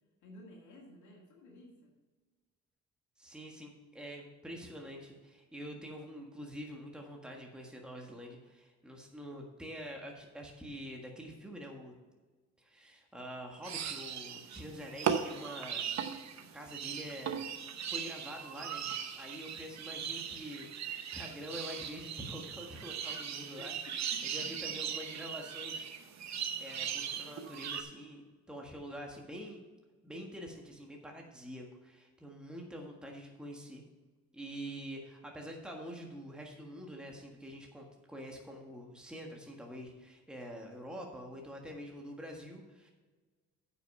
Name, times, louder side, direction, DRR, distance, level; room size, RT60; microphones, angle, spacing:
voice 1, 0.2-1.9 23.6-24.8, left 1 dB, 75° left, -2 dB, 2.1 m, -54 dB
voice 2, 3.2-12.0 12.6-15.9 16.5-17.4 17.9-18.9 19.1-20.7 21.1-23.7 24.2-25.9 26.2-29.6 30.0-33.8 34.3-42.9, equal, 5° right, 0 dB, 1.6 m, -46 dB
sound 1, 13.6-27.8, right 8 dB, 65° right, 0.9 m, -39 dB
9.0 x 5.9 x 5.5 m, 1.3 s
cardioid pair, 90°, 30 cm